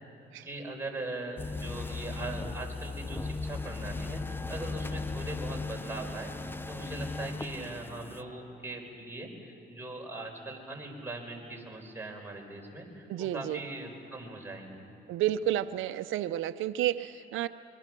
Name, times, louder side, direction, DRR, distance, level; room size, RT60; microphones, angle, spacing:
voice 1, 0.4-14.9, right 2 dB, 10° right, 0 dB, 4.6 m, -41 dB
sound 1, 1.4-8.2, left 3 dB, 10° left, 0.7 m, -37 dB
voice 2, 13.1-13.6 15.1-17.5, right 12 dB, 85° right, 10 dB, 0.6 m, -31 dB
25.5 x 22.5 x 6.1 m, 2.6 s
cardioid pair, 90°, 20 cm